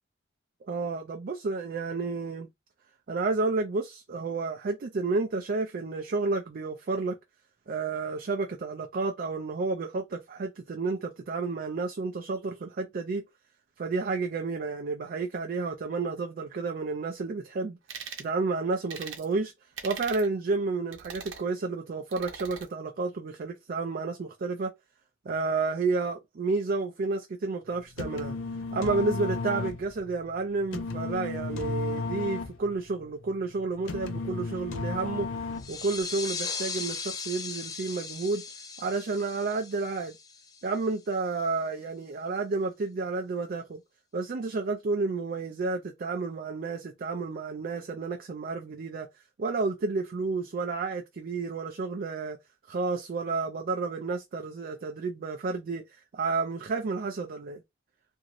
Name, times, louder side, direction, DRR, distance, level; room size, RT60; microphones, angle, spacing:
voice 1, 0.7-2.5 3.1-7.2 7.7-13.2 13.8-17.8 18.2-19.5 19.8-24.7 25.3-28.3 28.7-35.3 35.7-38.4 38.8-40.2 40.6-43.8 44.1-49.1 49.4-52.4 52.7-55.8 56.1-57.6, right 3 dB, 50° right, 0.4 m, -31 dB
sound 1, 17.9-18.3 18.9-19.2 19.8-20.3 20.9-21.4 22.1-22.7, right 6 dB, 65° right, 0.8 m, -40 dB
sound 2, 27.7-36.0, left 4 dB, 75° left, 0.5 m, -34 dB
sound 3, 35.6-40.9, left 5 dB, 20° left, 0.4 m, -38 dB
2.9 x 2.6 x 2.5 m
head